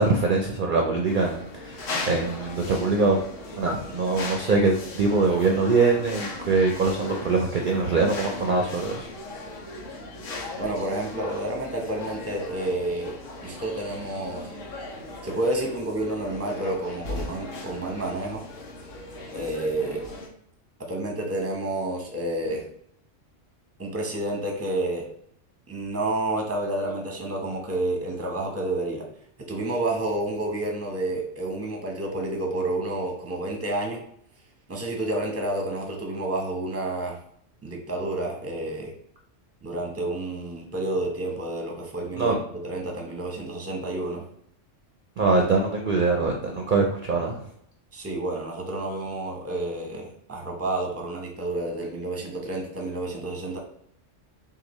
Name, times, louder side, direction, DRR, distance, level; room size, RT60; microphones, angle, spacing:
voice 1, 0.0-3.2 3.6-9.1 42.1-42.4 45.2-47.4, right 3 dB, 55° right, 2 dB, 0.6 m, -23 dB
sound 1, 1.0-20.3, left 2 dB, 90° left, 1.2 m, -38 dB
voice 2, 10.6-13.1 13.4-14.5 15.2-18.4 19.3-20.0 20.9-22.6 23.8-25.1 25.7-29.0 29.5-34.0 34.7-37.2 37.6-38.9 39.6-42.3 42.6-44.2 47.9-53.6, right 2 dB, 15° right, 0 dB, 0.7 m, -29 dB
6.6 x 2.4 x 3.0 m, 0.70 s
omnidirectional pair, 1.3 m